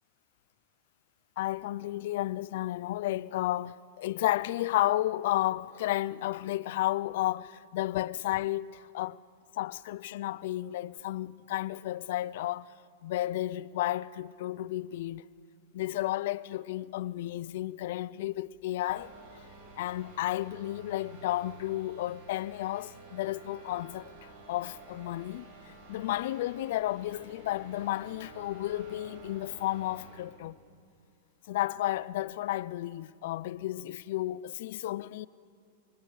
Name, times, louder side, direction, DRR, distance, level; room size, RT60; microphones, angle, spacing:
voice 1, 1.4-9.2 9.6-12.7 13.0-15.2 15.7-19.1 19.8-30.6 31.5-35.3, left 15 dB, 65° left, 0.5 m, -32 dB
sound 1, 18.9-30.3, right 3 dB, 55° right, 6.7 m, -51 dB
24.5 x 22.5 x 6.5 m
hypercardioid pair, 110°, 0 cm